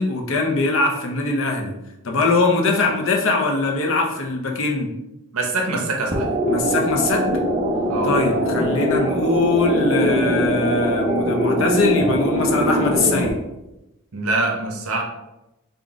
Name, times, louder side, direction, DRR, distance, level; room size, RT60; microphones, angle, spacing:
voice 1, 0.0-1.7 2.0-4.9 6.5-7.3 8.0-13.4, left 3 dB, 60° left, 1 dB, 0.6 m, -21 dB
voice 2, 5.3-6.3 7.9-8.1 14.1-15.0, right 2 dB, 75° right, 1 dB, 0.8 m, -24 dB
sound 1, 6.1-13.3, equal, 25° right, 0.5 m, -21 dB
3.8 x 2.3 x 3.5 m, 0.93 s
head